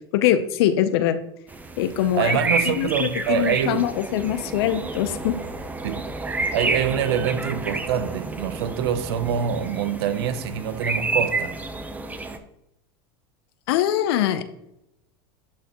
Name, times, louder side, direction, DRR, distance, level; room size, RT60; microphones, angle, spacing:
voice 1, 0.1-1.2 1.8-2.4 2.7-5.3 13.7-14.4, left 11 dB, 75° left, 0.7 m, -22 dB
sound 1, 1.5-12.4, right 3 dB, 10° right, 0.7 m, -30 dB
voice 2, 2.1-3.9 5.8-6.1 6.4-11.6, right 8 dB, 80° right, 0.7 m, -25 dB
11.5 x 4.2 x 3.0 m
supercardioid pair, 110°, 13 cm